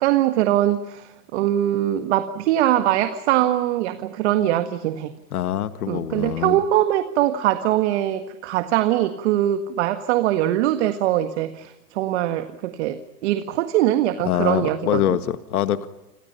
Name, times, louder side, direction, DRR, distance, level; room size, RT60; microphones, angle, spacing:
voice 1, 0.0-5.1 5.9-15.2, right 13 dB, 45° right, 9 dB, 1.8 m, -22 dB
voice 2, 5.3-6.6 14.3-15.9, left 11 dB, 70° left, 11 dB, 1.9 m, -24 dB
30.0 x 27.0 x 5.7 m, 0.98 s
hypercardioid pair, 140°, 47 cm